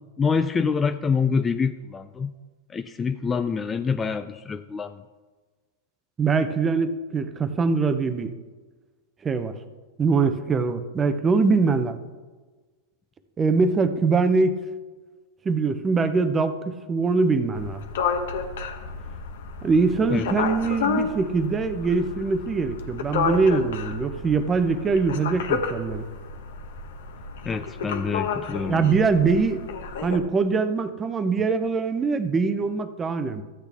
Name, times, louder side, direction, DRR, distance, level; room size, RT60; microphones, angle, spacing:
voice 1, 0.2-2.3 2.7-5.0 20.1-20.3 27.5-28.9, left 5 dB, 15° left, 10 dB, 0.3 m, -26 dB
voice 2, 6.2-8.3 9.2-9.5 10.0-12.0 13.4-14.6 15.4-17.8 19.6-26.1 28.7-29.6 30.0-33.4, right 4 dB, 20° right, 10 dB, 0.7 m, -23 dB
sound 1, 17.5-30.2, left 5 dB, 75° left, 1.1 m, -31 dB
13.5 x 8.1 x 3.5 m, 1.3 s
hypercardioid pair, 135°, 0 cm